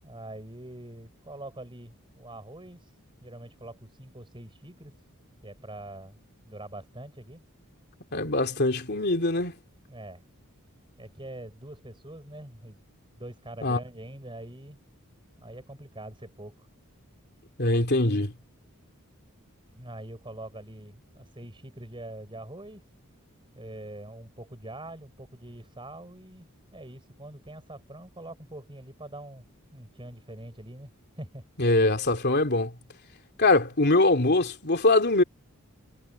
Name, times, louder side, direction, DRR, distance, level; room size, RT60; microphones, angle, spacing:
voice 1, 0.0-5.0 5.4-6.2 6.4-7.4 9.9-10.2 11.0-12.8 13.2-14.8 15.4-16.7 19.8-22.8 23.6-26.5 26.7-29.5 29.7-31.4, right 1 dB, 25° right, 7.1 m, -44 dB
voice 2, 8.1-9.5 13.6-13.8 17.6-18.3 31.6-32.7 33.4-35.2, left 2 dB, 50° left, 3.1 m, -23 dB
head